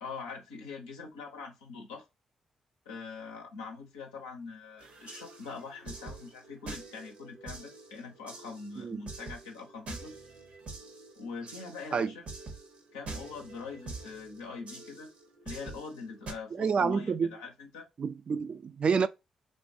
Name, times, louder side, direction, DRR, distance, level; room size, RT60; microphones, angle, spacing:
voice 1, 0.0-2.0 2.9-10.2 11.2-12.3 12.9-15.1 15.4-17.9, left 4 dB, 85° left, 0.6 m, -43 dB
sound 1, 4.8-16.3, right 3 dB, 65° right, 0.9 m, -46 dB
voice 2, 16.5-17.3 18.0-19.1, right 5 dB, 50° right, 0.4 m, -28 dB
3.2 x 2.2 x 2.5 m
hypercardioid pair, 40°, 2 cm